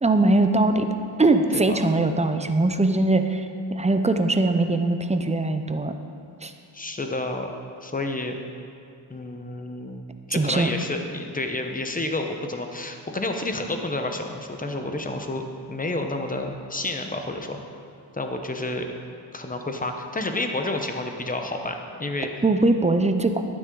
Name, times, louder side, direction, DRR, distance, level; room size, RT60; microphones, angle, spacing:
voice 1, 0.0-0.9 1.2-3.5 3.7-5.9 6.4-6.5 10.3-10.7 22.4-23.4, right 2 dB, 15° right, 7 dB, 0.6 m, -21 dB
voice 2, 6.7-7.5 7.8-8.4 9.1-15.4 15.7-17.6 18.1-18.9 19.3-22.3, left 2 dB, 15° left, 4 dB, 1.0 m, -30 dB
11.5 x 9.5 x 3.9 m, 2.5 s
cardioid pair, 80°, 47 cm